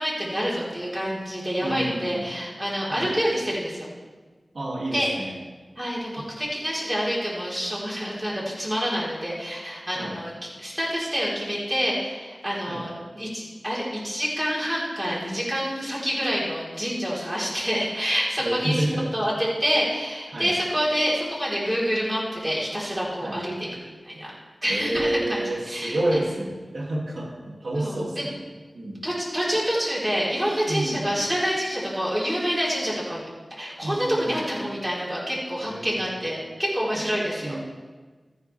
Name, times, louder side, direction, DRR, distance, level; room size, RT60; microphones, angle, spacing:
voice 1, 0.0-3.9 4.9-5.1 5.8-10.3 10.6-18.8 19.1-24.3 24.6-26.0 27.7-28.2 29.0-33.2 33.6-37.6, equal, 10° right, -6 dB, 4.2 m, -27 dB
voice 2, 1.6-2.3 2.9-3.1 4.5-5.3 9.9-10.2 12.6-12.9 18.4-19.1 20.3-20.5 23.2-23.4 24.7-28.4 28.7-29.0 30.7-31.0 33.8-34.4 35.6-36.3 37.4-37.6, right 1 dB, 65° right, -3 dB, 2.7 m, -29 dB
14.0 x 10.0 x 3.5 m, 1.4 s
wide cardioid pair, 75°, 0 cm